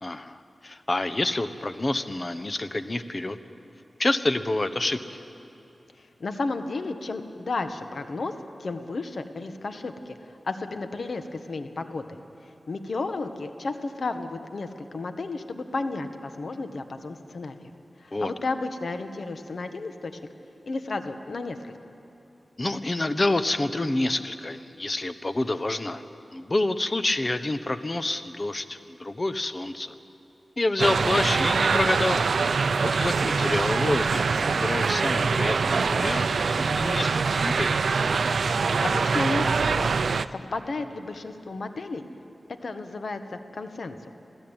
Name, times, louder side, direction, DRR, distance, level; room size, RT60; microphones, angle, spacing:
voice 1, 0.0-3.4 4.0-5.2 18.1-18.3 22.6-26.0 26.3-29.9 30.6-32.2 32.6-37.8, left 2 dB, 35° left, 11 dB, 1.1 m, -28 dB
voice 2, 6.0-8.3 8.6-12.2 12.7-17.5 18.0-20.2 20.6-21.7 38.8-42.0 42.5-43.9, left 3 dB, 70° left, 8 dB, 1.4 m, -33 dB
sound 1, 30.8-40.3, right 4 dB, 80° right, 0.5 m, -24 dB
26.5 x 16.0 x 9.0 m, 2.9 s
wide cardioid pair, 65°, 0 cm